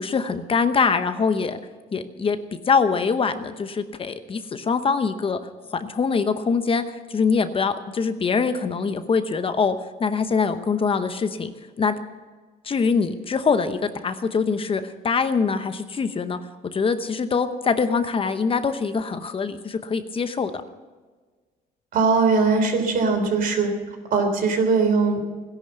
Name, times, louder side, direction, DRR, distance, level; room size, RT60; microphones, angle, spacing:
voice 1, 0.0-1.6 1.9-2.4 2.7-5.4 5.7-9.7 10.0-11.5 11.8-11.9 12.6-16.4 16.7-20.5, left 5 dB, 30° left, 10 dB, 0.9 m, -23 dB
voice 2, 21.9-23.7 24.1-25.2, right 4 dB, 60° right, 5 dB, 3.4 m, -20 dB
17.5 x 11.0 x 6.8 m, 1.4 s
cardioid pair, 110°, 17 cm